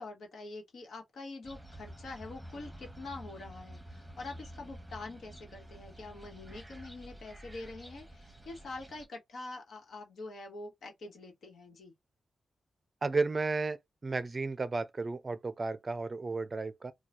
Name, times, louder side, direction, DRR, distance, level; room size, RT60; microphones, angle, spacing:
voice 1, 0.0-11.9, left 3 dB, 75° left, 1.2 m, -45 dB
sound 1, 1.4-9.1, right 1 dB, 10° right, 0.9 m, -49 dB
voice 2, 13.0-16.9, right 3 dB, 35° right, 0.4 m, -33 dB
3.0 x 2.2 x 4.1 m
cardioid pair, 90°, 0 cm